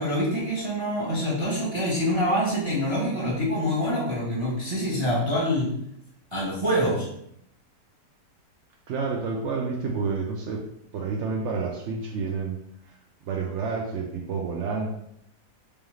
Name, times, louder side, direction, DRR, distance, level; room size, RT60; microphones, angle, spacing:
voice 1, 0.0-5.7 6.3-7.1, equal, 20° right, -5 dB, 0.8 m, -25 dB
voice 2, 8.9-10.6 10.9-13.0 13.2-15.0, right 4 dB, 85° right, 0 dB, 0.6 m, -29 dB
3.4 x 3.4 x 3.1 m, 0.74 s
omnidirectional pair, 1.8 m